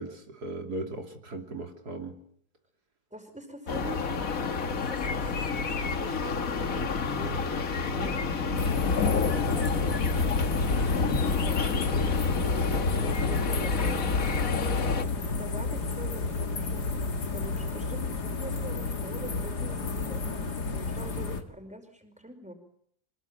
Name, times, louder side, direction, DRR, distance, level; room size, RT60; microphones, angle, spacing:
voice 1, 0.0-2.2 8.5-8.8 10.9-11.2 20.1-20.3, right 2 dB, 75° right, 4 dB, 3.4 m, -38 dB
voice 2, 3.1-4.1 4.7-8.5 9.1-10.1 10.9-12.1 12.5-14.0 15.4-20.2 20.7-22.5, equal, 5° right, 6 dB, 5.2 m, -44 dB
sound 1, 3.7-15.0, left 4 dB, 55° left, 2.0 m, -29 dB
sound 2, 8.6-21.4, left 4 dB, 80° left, 2.7 m, -31 dB
26.0 x 20.0 x 9.0 m, 0.66 s
omnidirectional pair, 1.7 m